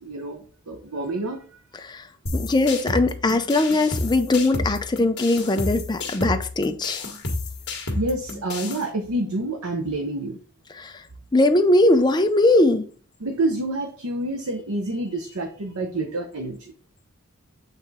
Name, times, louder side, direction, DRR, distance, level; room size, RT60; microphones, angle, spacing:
voice 1, 0.0-1.4 8.0-10.4 13.2-16.7, right 2 dB, 90° right, 0.9 m, -28 dB
sound 1, 2.3-8.8, left 2 dB, 55° left, 1.5 m, -30 dB
voice 2, 2.3-7.0 10.8-10.9 11.3-12.9, left 2 dB, 20° left, 0.5 m, -20 dB
8.2 x 3.6 x 4.1 m
head